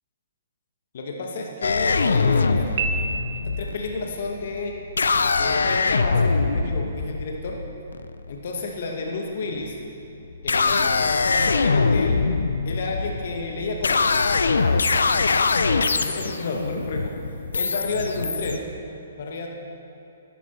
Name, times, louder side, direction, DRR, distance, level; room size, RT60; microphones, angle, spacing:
voice 1, 0.9-2.7 3.4-4.8 5.4-7.6 8.3-9.8 10.4-11.0 11.3-12.2 12.6-14.1 14.5-14.8 15.6-17.1 17.5-18.6 19.2-19.5, left 3 dB, 60° left, 1 dB, 1.3 m, -31 dB
sound 1, 1.6-8.4 9.4-9.9 10.3-18.6, left 4 dB, 80° left, 0.5 m, -23 dB
Piano, 2.8-3.9, right 5 dB, 55° right, 0.8 m, -29 dB
12.0 x 11.5 x 4.4 m, 2.8 s
hypercardioid pair, 130°, 0 cm